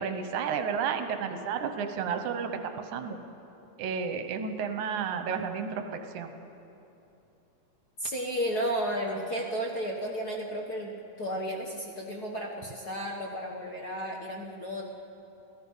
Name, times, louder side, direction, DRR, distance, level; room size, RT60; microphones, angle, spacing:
voice 1, 0.0-2.6 2.9-3.2 3.8-6.3, right 6 dB, 80° right, 7 dB, 2.5 m, -32 dB
voice 2, 8.0-14.8, equal, 45° left, -1 dB, 1.4 m, -33 dB
28.5 x 16.5 x 5.6 m, 3.0 s
omnidirectional pair, 3.4 m